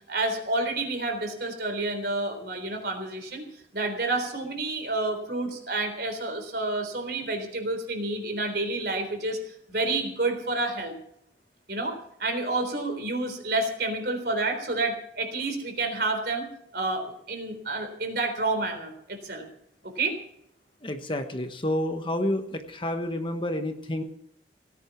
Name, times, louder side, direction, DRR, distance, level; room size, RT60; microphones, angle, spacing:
voice 1, 0.1-3.4 3.7-10.9 11.7-16.5 16.7-19.5 19.8-20.2, right 2 dB, 55° right, 6 dB, 3.7 m, -29 dB
voice 2, 20.8-24.0, left 1 dB, 25° left, 7 dB, 1.1 m, -29 dB
17.5 x 10.0 x 6.0 m, 0.70 s
head